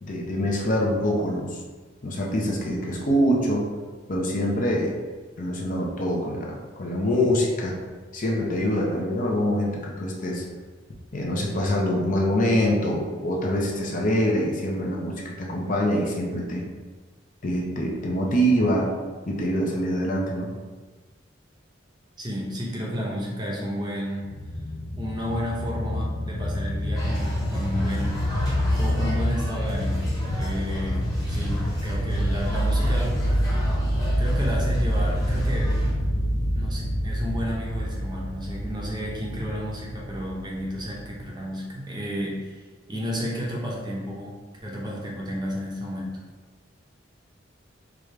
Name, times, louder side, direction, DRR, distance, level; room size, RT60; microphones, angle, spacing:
voice 1, 0.0-1.6 2.0-3.7 4.1-4.9 5.4-7.8 8.1-10.4 11.1-16.6 17.4-18.9 19.3-20.5, equal, 45° left, -2 dB, 0.7 m, -25 dB
voice 2, 22.2-24.3 25.0-28.2 28.8-30.1 30.4-33.2 34.2-35.7 36.5-42.5 42.9-46.1, equal, 20° right, -3 dB, 0.7 m, -32 dB
sound 1, 24.2-41.2, equal, 85° left, 0.6 m, -26 dB
sound 2, 27.0-35.9, equal, 20° left, 1.2 m, -39 dB
4.8 x 2.4 x 3.2 m, 1.4 s
head